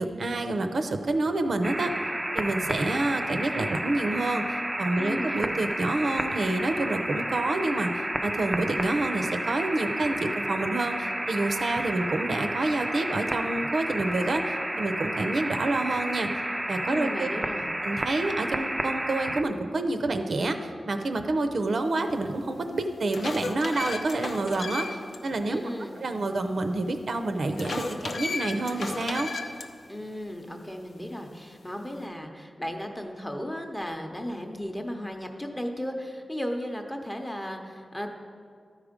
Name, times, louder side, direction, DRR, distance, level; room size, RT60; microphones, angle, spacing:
voice 1, 0.0-1.9 2.3-7.9 8.2-16.3 16.7-17.3 17.8-25.7 26.0-29.3, right 2 dB, 65° right, 7 dB, 0.6 m, -28 dB
sound 1, 1.6-19.4, right 1 dB, 10° right, 0.4 m, -31 dB
voice 2, 5.0-5.6 16.9-17.7 25.5-25.9 29.9-38.1, equal, 15° left, 4 dB, 0.8 m, -35 dB
sound 2, 22.2-22.3 22.8-25.2 25.5-25.6 27.6-29.7, left 3 dB, 65° left, 0.6 m, -34 dB
13.0 x 4.9 x 5.1 m, 2.3 s
wide cardioid pair, 115°, 0 cm